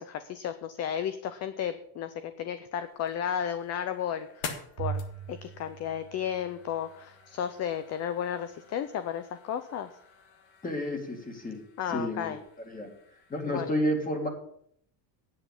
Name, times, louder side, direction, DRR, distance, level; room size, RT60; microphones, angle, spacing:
voice 1, 0.0-5.0 5.3-9.9 11.8-12.4 13.5-13.7, left 9 dB, 35° left, 11 dB, 0.5 m, -33 dB
sound 1, 2.7-13.7, left 6 dB, 65° left, 1.8 m, -48 dB
Bowed string instrument, 4.8-7.2, right 7 dB, 50° right, 0.7 m, -39 dB
voice 2, 10.6-11.6 11.9-12.3 12.7-12.9 13.3-14.3, equal, 15° left, 3 dB, 2.3 m, -30 dB
9.2 x 8.2 x 7.1 m, 0.67 s
cardioid pair, 160°, 49 cm